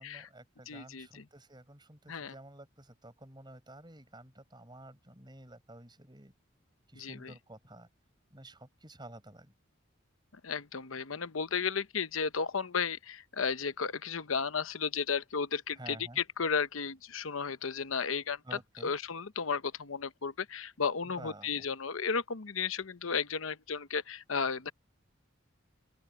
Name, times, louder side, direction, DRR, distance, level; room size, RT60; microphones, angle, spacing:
voice 1, 0.0-6.3 6.9-7.9 8.3-9.5 15.8-16.2 18.4-18.9 21.0-21.6, right 1 dB, 20° right, 6.0 m, -51 dB
voice 2, 0.7-1.2 2.1-2.3 7.0-7.3 10.4-18.4 18.8-24.7, left 5 dB, 90° left, 0.9 m, -34 dB
open air
head